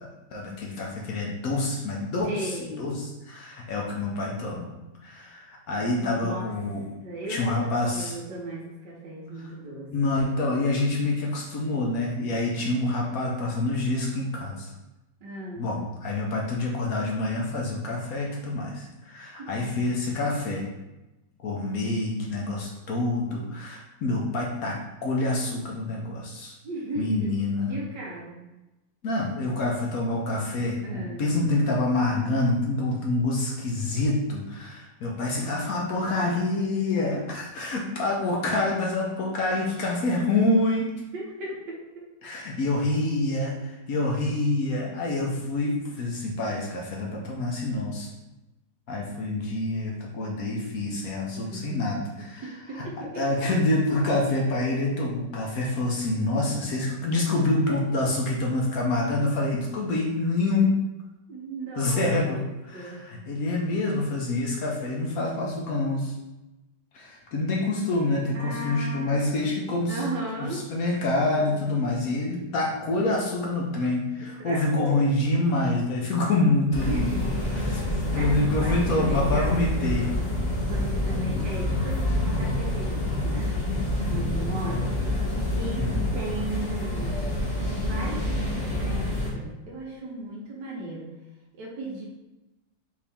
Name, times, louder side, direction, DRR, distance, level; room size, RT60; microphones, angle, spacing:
voice 1, 0.3-2.5 2.8-6.8 7.3-8.2 9.9-14.7 15.6-20.7 21.4-24.8 25.0-26.5 27.0-27.7 29.0-40.9 42.2-48.1 48.9-52.4 52.7-60.7 61.8-66.1 66.9-70.0 70.4-77.1 77.5-77.8 78.1-80.1 81.3-81.4 85.7-86.1, left 2 dB, 60° left, -2 dB, 1.1 m, -27 dB
voice 2, 2.2-2.9 6.0-6.5 7.0-9.9 15.2-15.7 19.4-19.7 26.6-27.3 27.7-28.4 30.8-31.2 39.2-39.3 41.1-42.1 51.3-52.0 52.4-53.2 61.3-62.4 62.7-63.0 68.3-69.2 69.9-70.6 74.4-75.0 76.8-77.3 78.1-79.7 80.7-83.6 83.9-85.0 85.4-85.8 86.1-87.2 87.7-91.1 91.5-92.1, right 1 dB, 75° right, -2 dB, 1.5 m, -36 dB
sound 1, 76.7-89.3, left 1 dB, 45° left, 1.2 m, -27 dB
4.8 x 2.8 x 3.4 m, 1.0 s
omnidirectional pair, 1.9 m